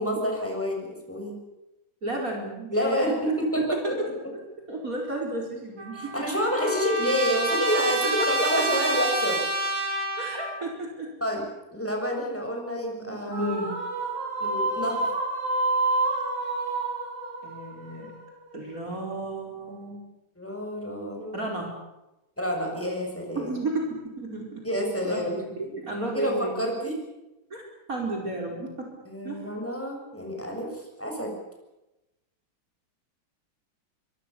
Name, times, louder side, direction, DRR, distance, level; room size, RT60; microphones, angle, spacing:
voice 1, 0.0-1.3 2.7-4.1 5.9-9.4 11.2-11.4 11.7-13.5 14.4-15.1 20.4-21.5 22.4-23.5 24.6-25.4 25.6-25.7 26.1-26.9 29.1-31.3, equal, 5° left, 1 dB, 6.9 m, -28 dB
voice 2, 2.0-3.2 3.8-4.1 4.7-6.3 8.2-8.3 10.2-11.1 13.0-13.8 17.4-18.1 18.5-20.0 21.3-21.7 23.4-23.9 24.2-24.6 25.0-26.5 27.5-27.6 27.9-28.9 29.2-29.4, right 1 dB, 40° right, 0 dB, 5.1 m, -32 dB
Trumpet, 5.8-10.7, right 2 dB, 80° right, 4.5 m, -28 dB
sound 1, 13.3-18.7, right 2 dB, 60° right, 6.6 m, -29 dB
25.0 x 23.5 x 7.1 m, 0.96 s
omnidirectional pair, 2.2 m